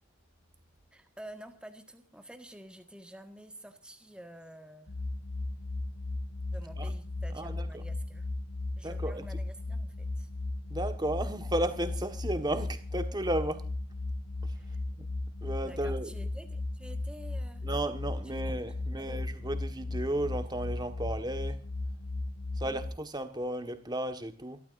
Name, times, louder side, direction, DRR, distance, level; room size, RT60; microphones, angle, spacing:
voice 1, 0.9-4.9 6.5-8.3 8.8-10.3 14.5-14.8 15.6-17.6 18.9-19.2 22.6-22.8, right 1 dB, 5° right, 1.6 m, -49 dB
sound 1, 4.9-22.9, left 2 dB, 70° left, 2.2 m, -36 dB
voice 2, 7.3-7.8 8.8-9.2 10.7-13.7 14.4-14.5 15.0-15.1 15.4-16.1 17.6-21.6 22.6-24.6, right 1 dB, 20° right, 1.5 m, -34 dB
29.0 x 13.5 x 2.6 m
head